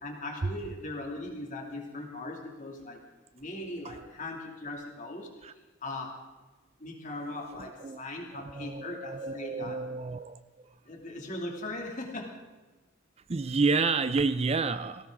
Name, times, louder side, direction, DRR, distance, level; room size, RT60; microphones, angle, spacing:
voice 1, 0.0-3.0 3.3-5.3 5.8-6.2 6.8-9.9 10.9-12.4, left 2 dB, 40° left, 1 dB, 2.7 m, -39 dB
voice 2, 8.3-10.4 13.3-15.1, right 4 dB, 30° right, 12 dB, 0.4 m, -29 dB
19.0 x 17.0 x 3.8 m, 1.2 s
head